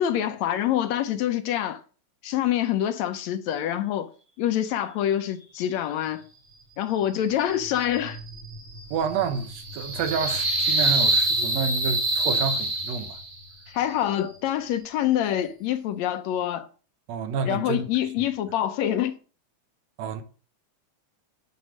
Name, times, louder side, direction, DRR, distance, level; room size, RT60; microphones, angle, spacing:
voice 1, 0.0-1.8 2.2-4.1 4.4-6.3 6.8-8.2 13.7-16.7 17.5-19.1, left 11 dB, 75° left, 1.9 m, -26 dB
sound 1, 7.5-13.4, right 2 dB, 35° right, 1.1 m, -26 dB
voice 2, 8.9-13.2 17.1-17.9 18.2-18.3 20.0-20.2, right 6 dB, 70° right, 2.2 m, -29 dB
9.6 x 5.1 x 6.2 m
omnidirectional pair, 3.3 m